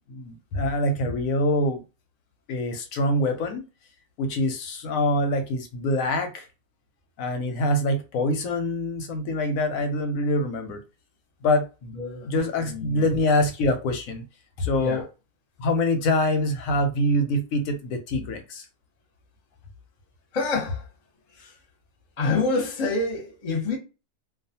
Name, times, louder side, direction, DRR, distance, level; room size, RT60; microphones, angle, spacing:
voice 1, 0.1-1.8 2.5-3.6 4.2-6.5 7.2-10.8 11.4-11.7 12.3-14.2 14.6-15.1 15.6-18.6, left 1 dB, 90° left, 1.0 m, -25 dB
voice 2, 11.9-12.3 12.6-13.0 14.8-15.0 20.3-20.9 21.3-21.5 22.2-23.8, left 3 dB, 40° left, 0.7 m, -27 dB
2.3 x 2.3 x 2.7 m
omnidirectional pair, 1.4 m